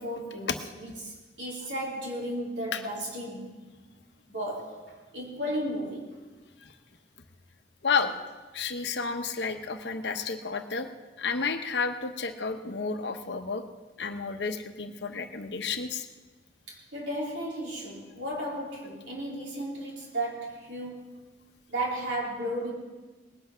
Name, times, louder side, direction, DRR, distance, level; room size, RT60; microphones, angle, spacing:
voice 1, 0.0-3.6 4.3-6.2 16.7-21.1 21.7-22.7, right 1 dB, 90° right, -4 dB, 3.9 m, -34 dB
voice 2, 7.8-8.1 8.5-10.9 11.2-13.6 14.0-16.1, left 5 dB, 70° left, 7 dB, 1.0 m, -31 dB
19.5 x 8.2 x 5.7 m, 1.3 s
head